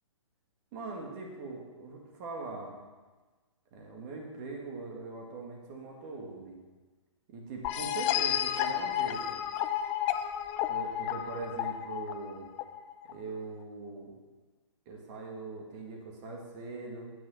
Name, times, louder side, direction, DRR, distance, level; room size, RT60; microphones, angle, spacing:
voice 1, 0.7-2.8 3.7-6.6 7.3-9.4 10.7-12.5 13.0-14.1 14.9-17.1, right 3 dB, 35° right, 0 dB, 2.0 m, -41 dB
sound 1, 7.6-13.1, left 11 dB, 25° left, 0.4 m, -32 dB
9.0 x 6.0 x 6.3 m, 1.3 s
hypercardioid pair, 130°, 16 cm